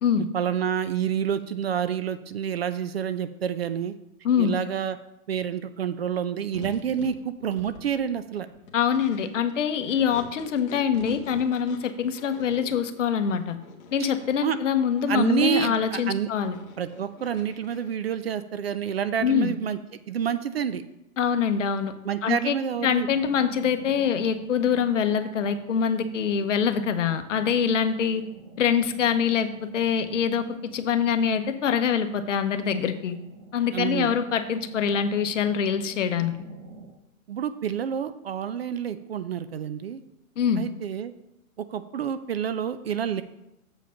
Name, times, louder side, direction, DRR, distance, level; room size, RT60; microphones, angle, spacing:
voice 1, 0.3-3.9 4.4-5.0 5.3-8.5 14.4-14.6 15.1-16.3 16.8-19.8 20.1-20.8 22.0-23.1 33.7-34.1 37.3-40.0 40.6-41.1 41.6-43.2, right 8 dB, 50° right, 13 dB, 0.4 m, -28 dB
voice 2, 4.2-4.6 8.7-13.6 13.9-16.6 19.2-19.5 21.2-21.9 22.2-22.6 22.8-28.2 28.6-30.4 30.7-33.2 33.5-36.3 40.4-40.6, left 7 dB, 60° left, 9 dB, 0.9 m, -24 dB
sound 1, 6.5-18.3, left 5 dB, 30° left, 1.2 m, -46 dB
sound 2, 22.7-36.9, right 4 dB, 30° right, 1.8 m, -48 dB
7.5 x 5.1 x 5.6 m, 0.87 s
hypercardioid pair, 150°, 42 cm